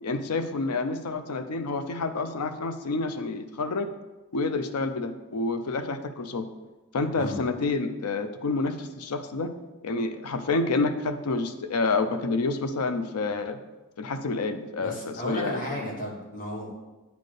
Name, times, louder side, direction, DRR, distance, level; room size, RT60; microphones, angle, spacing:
voice 1, 0.0-3.9 4.3-6.5 6.9-9.5 9.8-13.6 14.0-15.6, left 3 dB, 90° left, 8 dB, 0.5 m, -28 dB
voice 2, 14.8-16.7, left 1 dB, 40° left, -2 dB, 1.4 m, -34 dB
9.3 x 4.3 x 3.3 m, 1.1 s
head